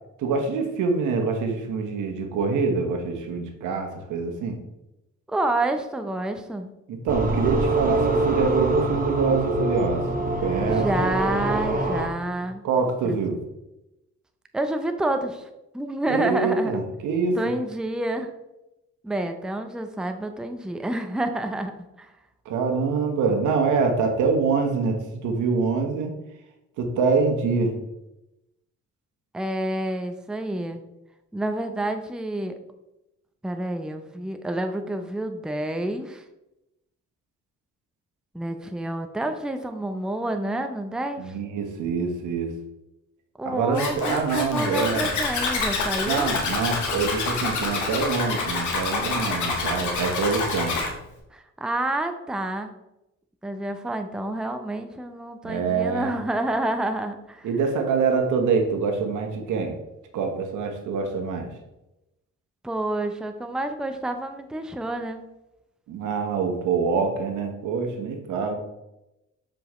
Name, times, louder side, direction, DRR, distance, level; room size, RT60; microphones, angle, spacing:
voice 1, 0.2-4.6 6.9-10.9 12.6-13.4 16.1-17.4 22.4-26.1 26.8-27.7 41.2-42.5 43.4-45.1 46.1-50.7 55.4-56.1 57.4-59.7 60.1-61.5 65.9-68.6, right 4 dB, 80° right, 4 dB, 1.2 m, -25 dB
voice 2, 5.3-6.7 10.7-12.6 13.0-13.2 14.5-15.5 15.7-16.7 17.4-18.3 19.0-21.7 22.0-22.1 29.3-30.8 31.3-32.5 33.4-36.2 38.3-41.3 43.4-46.3 51.3-52.7 53.4-57.5 62.6-65.3, right 1 dB, ahead, 6 dB, 0.6 m, -28 dB
sound 1, 7.1-12.1, right 2 dB, 30° right, 1.2 m, -25 dB
Zipper (clothing), 43.7-50.9, left 4 dB, 75° left, 1.6 m, -27 dB
7.1 x 5.1 x 3.1 m, 0.92 s
cardioid pair, 90°, 30 cm